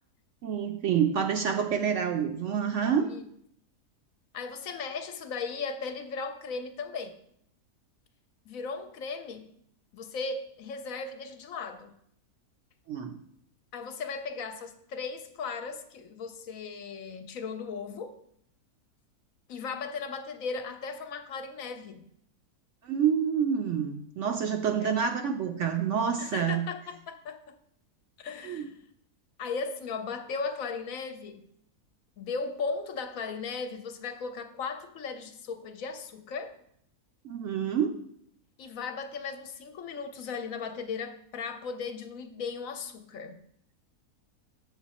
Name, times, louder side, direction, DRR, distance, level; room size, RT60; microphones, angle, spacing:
voice 1, 0.4-3.1 12.9-13.2 22.8-26.6 28.4-28.7 37.2-37.9, right 7 dB, 65° right, 0.8 m, -28 dB
voice 2, 4.3-7.2 8.5-9.5 9.9-11.9 13.7-18.2 19.5-22.1 24.8-24.9 26.2-27.6 28.2-28.8 29.4-31.5 32.2-36.6 38.6-43.4, left 5 dB, 65° left, 1.0 m, -37 dB
7.8 x 6.1 x 4.1 m
omnidirectional pair, 1.6 m